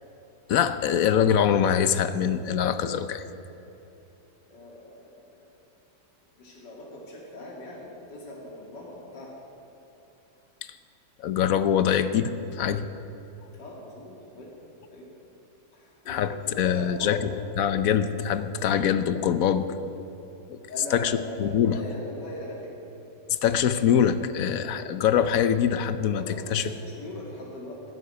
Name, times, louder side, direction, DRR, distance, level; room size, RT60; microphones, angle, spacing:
voice 1, 0.5-3.2 11.2-12.9 16.1-17.2 17.6-19.7 20.5-20.6 20.9-21.8 23.4-26.2 26.5-26.7, left 8 dB, 65° left, 12 dB, 1.0 m, -24 dB
voice 2, 4.5-5.5 6.4-9.3 13.6-14.5 14.9-15.1 15.7-17.4 20.7-23.1 26.1-27.8, left 1 dB, 85° left, -3 dB, 3.0 m, -40 dB
12.5 x 11.5 x 9.4 m, 2.9 s
omnidirectional pair, 1.8 m